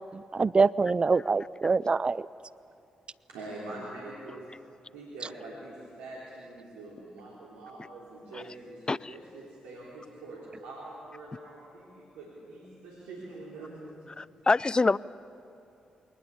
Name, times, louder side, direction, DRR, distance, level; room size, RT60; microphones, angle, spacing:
voice 1, 0.1-2.3, right 4 dB, 40° right, 0.4 m, -25 dB
voice 2, 3.3-4.5 4.9-14.1, right 2 dB, 85° right, 3.5 m, -44 dB
voice 3, 14.2-15.0, left 3 dB, 30° left, 0.5 m, -25 dB
22.5 x 19.5 x 8.4 m
hypercardioid pair, 40°, 3 cm